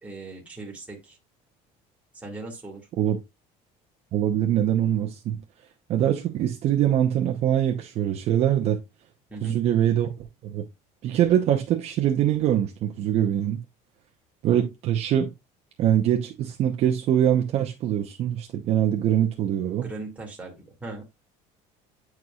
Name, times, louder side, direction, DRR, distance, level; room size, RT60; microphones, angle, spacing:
voice 1, 0.0-1.2 2.1-2.9 9.3-9.6 19.8-21.0, right 2 dB, 10° right, 2.0 m, -39 dB
voice 2, 4.1-5.4 5.9-8.8 9.4-10.6 11.0-13.6 14.4-15.3 15.8-19.8, right 10 dB, 45° right, 0.8 m, -23 dB
9.4 x 4.7 x 2.4 m
cardioid pair, 165°, 15 cm